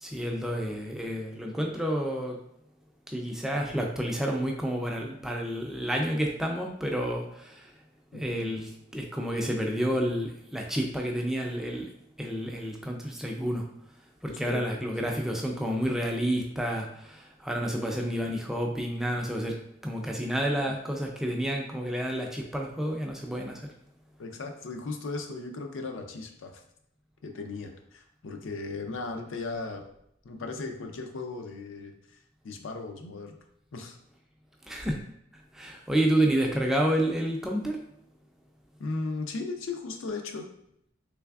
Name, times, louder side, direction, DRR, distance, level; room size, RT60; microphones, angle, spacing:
voice 1, 0.0-2.4 3.1-7.7 8.1-11.9 12.2-13.7 14.2-19.6 19.8-23.7 34.7-35.0 35.5-37.8, equal, ahead, 0 dB, 0.3 m, -30 dB
voice 2, 8.1-8.6 14.3-14.7 24.2-26.6 27.2-29.8 30.2-31.9 32.4-33.4 33.7-34.0 38.8-40.5, left 3 dB, 70° left, 4 dB, 0.5 m, -36 dB
3.3 x 3.3 x 2.3 m, 0.74 s
head